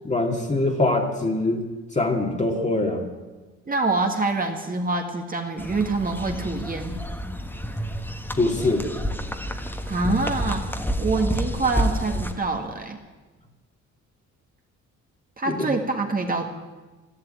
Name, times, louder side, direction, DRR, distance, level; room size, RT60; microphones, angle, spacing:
voice 1, 0.0-1.7 1.9-3.0 8.4-8.9 15.5-15.6, left 2 dB, 25° left, 1 dB, 2.1 m, -23 dB
voice 2, 3.7-7.0 9.8-13.0 15.4-16.5, right 3 dB, 30° right, 3 dB, 1.7 m, -26 dB
sound 1, 5.6-12.3, equal, 5° left, 1.5 m, -29 dB
12.0 x 11.5 x 9.0 m, 1.2 s
cardioid pair, 90°, 30 cm